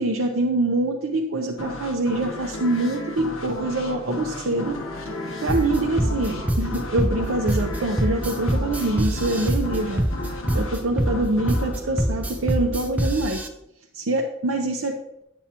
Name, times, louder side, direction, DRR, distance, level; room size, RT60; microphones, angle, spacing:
voice 1, 0.0-4.8 5.4-10.0 10.5-13.5 13.9-15.2, right 2 dB, 85° right, 1 dB, 0.7 m, -25 dB
sound 1, 1.6-13.0, left 2 dB, 80° left, 0.9 m, -35 dB
sound 2, 4.1-12.8, left 1 dB, 15° left, 2.4 m, -43 dB
sound 3, 5.5-13.5, right 1 dB, 5° right, 0.4 m, -24 dB
9.3 x 7.2 x 2.9 m, 0.81 s
head